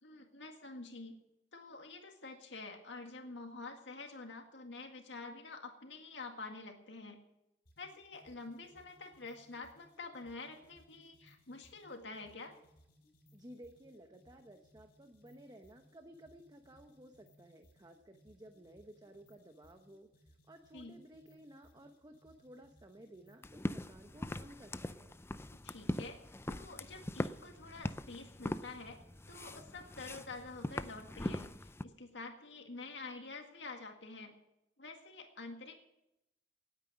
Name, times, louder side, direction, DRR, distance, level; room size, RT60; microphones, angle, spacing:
voice 1, 0.0-1.2 1.5-7.2 7.8-12.5 20.7-21.0 25.5-26.2 26.5-29.0 29.3-34.3 34.8-35.7, left 3 dB, 90° left, 4 dB, 1.9 m, -48 dB
sound 1, 7.7-23.5, equal, 60° left, 5.0 m, -66 dB
voice 2, 13.3-25.2, right 1 dB, 20° right, 5 dB, 1.1 m, -56 dB
sound 2, 23.4-31.8, left 1 dB, 15° left, 0.5 m, -41 dB
18.0 x 9.2 x 6.2 m, 0.86 s
head